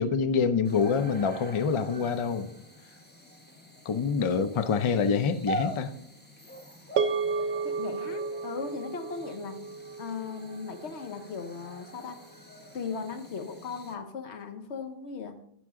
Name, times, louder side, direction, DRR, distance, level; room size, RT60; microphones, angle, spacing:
voice 1, 0.0-2.5 3.9-5.9, left 5 dB, 40° left, 0.5 m, -26 dB
sound 1, 0.6-14.0, right 1 dB, 10° left, 1.0 m, -44 dB
sound 2, 7.0-11.5, right 5 dB, 70° right, 0.8 m, -33 dB
voice 2, 7.6-9.7 10.0-12.2 12.7-15.4, left 5 dB, 80° left, 1.2 m, -38 dB
14.0 x 6.1 x 3.7 m
omnidirectional pair, 1.1 m